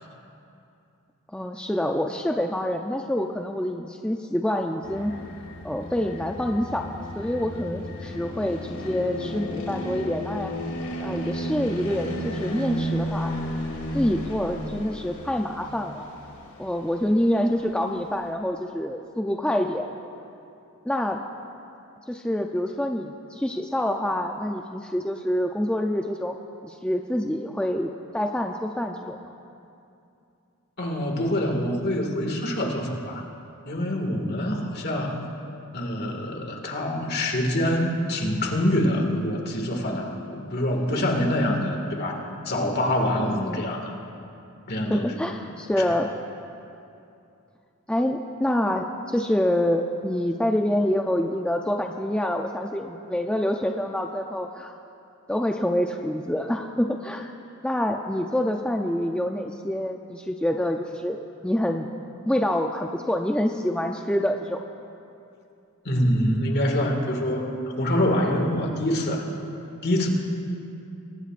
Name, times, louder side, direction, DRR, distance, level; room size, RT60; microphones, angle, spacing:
voice 1, 1.3-5.1 5.6-10.5 11.0-13.3 13.9-16.1 16.6-19.9 20.8-21.2 22.1-26.4 26.6-29.3 41.5-41.8 43.3-43.6 44.9-46.1 47.9-54.7 55.3-57.3 57.6-61.9 62.2-64.6, left 1 dB, 5° left, 2 dB, 0.5 m, -26 dB
sound 1, 4.8-18.3, equal, 90° left, 2.8 m, -34 dB
voice 2, 30.8-33.2 33.7-35.2 35.7-43.9 44.7-45.1 45.8-46.0 65.9-69.3 69.8-70.1, left 1 dB, 50° left, 2 dB, 2.0 m, -25 dB
23.5 x 19.5 x 2.5 m, 2.6 s
head